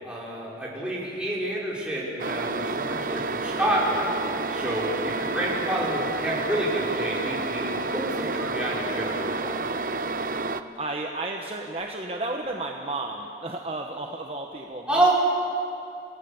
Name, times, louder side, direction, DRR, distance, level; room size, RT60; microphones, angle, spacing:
voice 1, 0.0-4.1 4.5-9.6 14.9-15.1, right 1 dB, 5° right, -6 dB, 4.9 m, -28 dB
sound 1, 2.2-10.6, right 3 dB, 50° right, 0.8 m, -29 dB
voice 2, 10.7-15.1, right 2 dB, 35° right, 1 dB, 1.2 m, -33 dB
28.0 x 17.5 x 7.1 m, 2.6 s
head